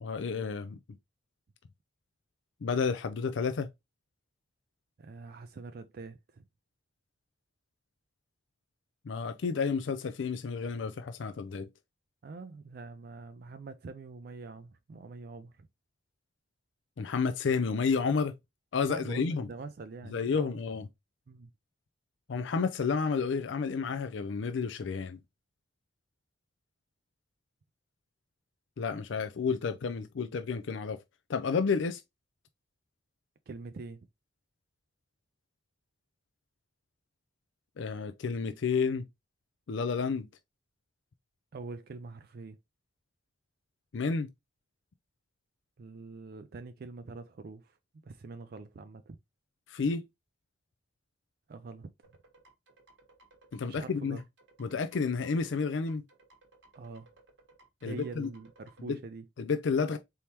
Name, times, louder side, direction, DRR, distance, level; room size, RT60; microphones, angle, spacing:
voice 1, 0.0-0.8 2.6-3.7 9.1-11.7 17.0-18.3 18.7-19.5 20.1-20.9 22.3-25.2 28.8-31.0 31.3-32.0 37.8-39.0 39.7-40.3 43.9-44.3 49.7-50.0 53.5-54.2 54.6-56.0 57.8-58.3 58.9-59.0 59.4-60.0, left 5 dB, 75° left, 0.4 m, -30 dB
voice 2, 5.0-6.4 12.2-15.7 18.8-20.6 21.3-21.5 33.5-34.1 41.5-42.6 45.8-47.8 48.0-49.2 51.5-51.9 53.6-54.2 56.7-57.1 57.8-59.3, right 4 dB, 50° right, 0.4 m, -44 dB
sound 1, 52.0-58.9, right 2 dB, 70° right, 1.3 m, -61 dB
4.4 x 3.5 x 2.8 m
head